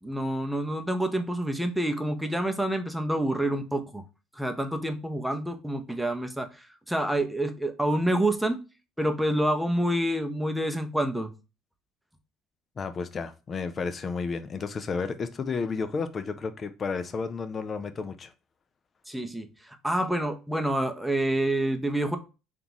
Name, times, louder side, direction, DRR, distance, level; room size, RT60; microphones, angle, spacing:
voice 1, 0.0-4.0 4.3-8.6 9.0-11.3 19.1-22.2, right 1 dB, 5° right, 0.6 m, -28 dB
voice 2, 12.8-18.3, left 5 dB, 40° left, 0.4 m, -32 dB
3.6 x 2.5 x 2.8 m
hypercardioid pair, 70°, 0 cm